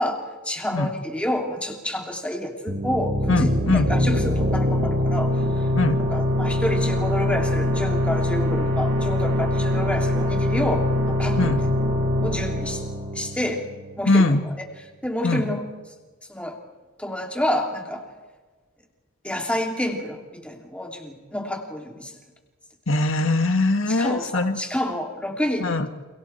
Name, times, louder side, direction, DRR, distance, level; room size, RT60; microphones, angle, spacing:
voice 1, 0.0-5.3 5.6-11.5 12.0-12.8 13.1-13.7 14.0-14.5 15.0-15.6 16.3-16.6 17.0-18.0 19.2-22.1 23.9-25.9, left 1 dB, 5° left, 1 dB, 2.9 m, -29 dB
sound 1, 2.7-14.1, left 1 dB, 65° right, 6.3 m, -23 dB
voice 2, 3.3-3.9 5.7-6.0 11.4-11.6 14.1-14.5 15.2-15.5 22.9-24.6 25.6-25.9, left 2 dB, 80° left, 6 dB, 1.8 m, -21 dB
30.0 x 28.0 x 4.5 m, 1.3 s
head